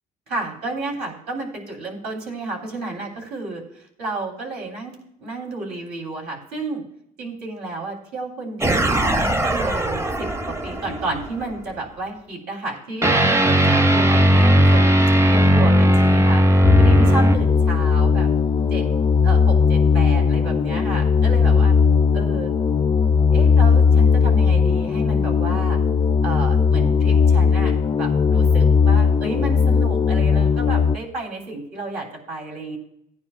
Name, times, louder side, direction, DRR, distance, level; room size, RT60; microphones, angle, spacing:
voice 1, 0.3-6.8 7.2-16.4 16.8-18.3 18.7-18.9 19.2-21.7 22.1-22.5 23.3-25.8 26.2-27.7 28.0-32.8, right 2 dB, 75° right, 0 dB, 3.8 m, -31 dB
sound 1, 8.6-11.4 13.0-17.4, equal, 15° right, 0.7 m, -17 dB
sound 2, 16.6-31.0, left 5 dB, 25° left, 0.3 m, -17 dB
17.0 x 9.6 x 2.5 m, 0.76 s
cardioid pair, 110°, 17 cm